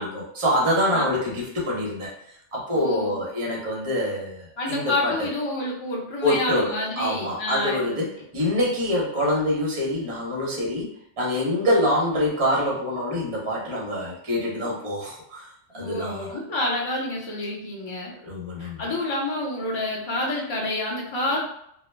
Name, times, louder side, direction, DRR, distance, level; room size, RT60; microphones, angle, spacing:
voice 1, 0.0-2.1 2.5-5.3 6.2-15.5 15.7-16.4 18.2-18.8, left 1 dB, 35° right, -4 dB, 0.6 m, -25 dB
voice 2, 2.7-3.2 4.6-8.0 15.7-18.1 18.6-21.4, left 2 dB, 35° left, -3 dB, 0.5 m, -28 dB
2.1 x 2.1 x 3.1 m, 0.71 s
omnidirectional pair, 1.3 m